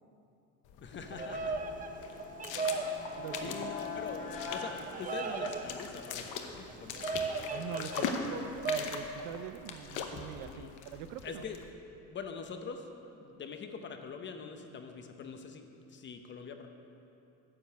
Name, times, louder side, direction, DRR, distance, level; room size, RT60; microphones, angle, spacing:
sound 1, 0.6-11.7, left 5 dB, 60° left, 0.9 m, -41 dB
voice 1, 0.8-1.6 2.7-7.0 10.4-10.8 11.2-11.6 12.1-16.7, left 5 dB, 35° left, 5 dB, 0.8 m, -44 dB
Bird vocalization bird call bird song, 1.0-9.0, right 3 dB, 25° right, 0.6 m, -38 dB
sound 2, 1.4-5.8, left 4 dB, 80° left, 1.9 m, -44 dB
voice 2, 3.2-3.8 7.5-8.1 8.6-11.5, right 10 dB, 75° right, 12 dB, 0.5 m, -44 dB
9.6 x 5.2 x 7.6 m, 2.7 s
cardioid pair, 120°, 34 cm